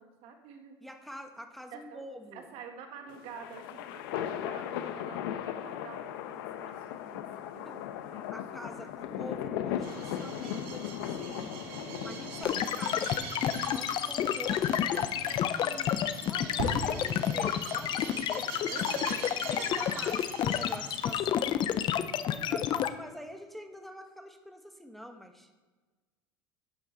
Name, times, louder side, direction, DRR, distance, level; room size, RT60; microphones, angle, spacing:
voice 1, 0.0-0.7 1.7-7.8 8.1-8.3 11.7-12.8 18.7-20.0 20.6-20.7 22.2-22.7, right 6 dB, 60° right, 5 dB, 1.7 m, -48 dB
voice 2, 0.8-2.5 7.6-7.8 8.3-11.5 12.0-15.9 16.2-18.8 19.5-21.5 22.2-25.5, equal, ahead, 4 dB, 1.0 m, -45 dB
sound 1, 3.1-13.6, left 10 dB, 80° left, 0.9 m, -37 dB
sound 2, 9.8-21.1, right 3 dB, 90° right, 2.5 m, -42 dB
sound 3, 12.4-22.9, left 10 dB, 40° left, 0.6 m, -29 dB
11.5 x 8.2 x 4.0 m, 1.3 s
supercardioid pair, 115°, 12 cm